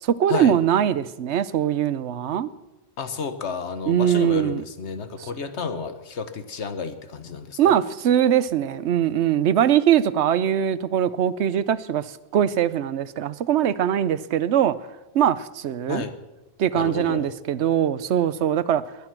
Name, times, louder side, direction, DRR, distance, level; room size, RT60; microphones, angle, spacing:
voice 1, 0.0-2.5 3.9-4.6 5.2-5.3 7.6-12.1 12.3-14.8 15.1-16.0 16.6-18.8, right 10 dB, 90° right, 16 dB, 1.0 m, -21 dB
voice 2, 3.0-7.8 15.9-16.1 16.7-17.3, left 5 dB, 90° left, 10 dB, 1.4 m, -31 dB
20.5 x 11.0 x 6.0 m, 1.0 s
omnidirectional pair, 1.1 m